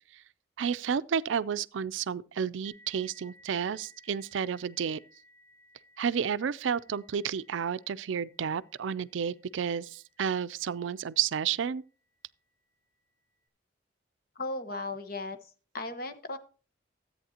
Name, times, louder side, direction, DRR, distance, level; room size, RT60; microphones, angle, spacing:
voice 1, 0.6-5.0 6.0-11.8, right 7 dB, 80° right, 0.4 m, -31 dB
sound 1, 2.6-11.9, equal, 70° left, 1.6 m, -61 dB
voice 2, 14.4-15.4 15.7-16.4, left 2 dB, 50° left, 1.1 m, -36 dB
13.5 x 8.6 x 2.8 m
head